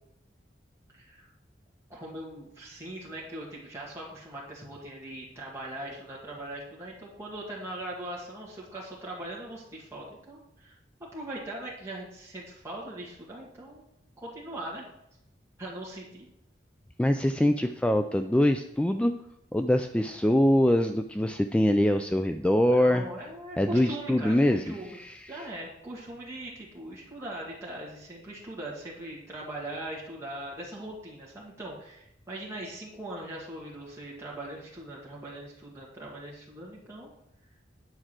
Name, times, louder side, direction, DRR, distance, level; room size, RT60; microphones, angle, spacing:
voice 1, 0.9-1.3 1.9-10.8 11.1-13.8 14.2-14.8 15.6-16.3 22.7-25.0 25.3-37.1, right 1 dB, 15° right, -6 dB, 1.8 m, -40 dB
voice 2, 17.0-19.1 19.5-23.1 23.6-25.3, left 1 dB, 5° left, 7 dB, 0.3 m, -24 dB
8.9 x 4.7 x 7.5 m, 0.81 s
head